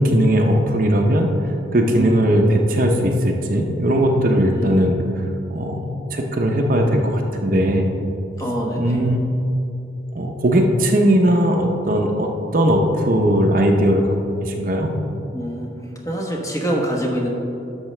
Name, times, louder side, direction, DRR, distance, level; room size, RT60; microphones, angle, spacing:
voice 1, 0.0-1.3 1.7-5.2 5.5-7.9 8.8-9.2 10.1-14.0 14.4-14.9, equal, 45° right, 2 dB, 0.7 m, -18 dB
voice 2, 4.4-4.7 8.4-9.1 15.3-17.3, equal, 15° left, -1 dB, 1.1 m, -25 dB
11.5 x 6.5 x 3.3 m, 2.8 s
head